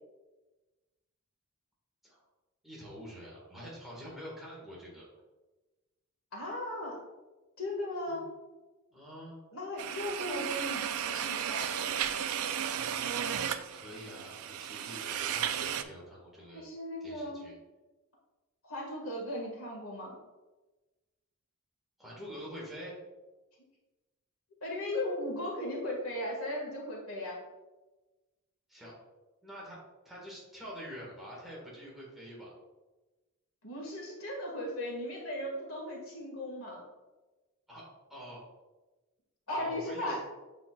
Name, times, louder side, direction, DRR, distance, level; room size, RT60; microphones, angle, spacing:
voice 1, 2.6-5.1 8.1-8.2 8.9-9.4 12.7-16.6 17.0-17.5 22.0-23.0 28.7-28.9 29.4-32.5 37.7-37.8 38.1-38.4 39.5-40.2, equal, ahead, -6 dB, 1.8 m, -46 dB
voice 2, 6.3-7.0 7.6-8.2 9.5-11.7 16.5-17.4 18.6-20.2 24.6-27.4 33.6-36.8 39.5-40.3, left 1 dB, 70° left, -2 dB, 1.9 m, -37 dB
sound 1, 9.8-15.8, right 9 dB, 75° right, 0.4 m, -34 dB
7.3 x 5.6 x 2.4 m, 1.2 s
head